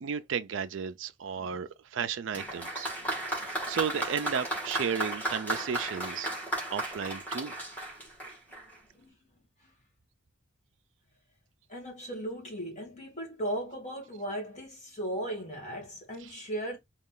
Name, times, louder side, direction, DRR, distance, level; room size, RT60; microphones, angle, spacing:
voice 1, 0.0-2.9 3.2-6.3 6.7-7.5 16.2-16.3, right 7 dB, 75° right, 0.4 m, -34 dB
Applause, 2.3-8.8, right 1 dB, 10° left, 1.7 m, -35 dB
voice 2, 11.7-16.8, right 1 dB, 35° left, 1.9 m, -37 dB
4.1 x 2.3 x 3.7 m
head